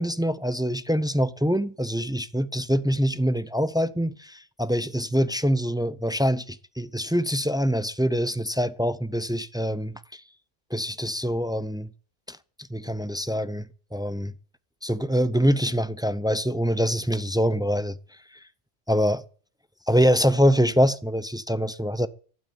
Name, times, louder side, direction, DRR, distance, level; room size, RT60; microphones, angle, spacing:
voice 1, 0.0-10.2 10.7-11.9 12.3-12.4 12.7-13.7 13.9-14.3 14.8-18.0 18.9-19.2 19.9-22.1, equal, 5° right, 0.3 m, -24 dB
12.5 x 12.0 x 8.5 m
omnidirectional pair, 1.2 m